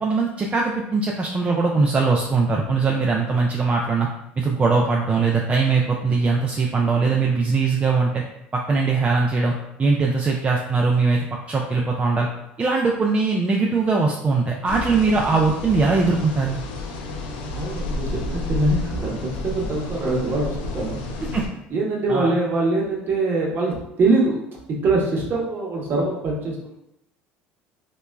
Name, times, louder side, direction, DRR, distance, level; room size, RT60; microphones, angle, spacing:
voice 1, 0.0-4.1 4.4-8.2 8.5-9.5 9.8-12.3 12.6-16.6 21.2-21.4 22.1-22.4, right 4 dB, 25° right, -1 dB, 0.3 m, -21 dB
sound 1, 14.7-21.5, left 2 dB, 80° left, 0.4 m, -31 dB
voice 2, 17.5-19.1 19.4-21.0 21.7-24.4 24.8-26.8, right 2 dB, 45° right, -2 dB, 0.8 m, -23 dB
2.9 x 2.2 x 2.2 m, 0.80 s
hypercardioid pair, 75°, 5 cm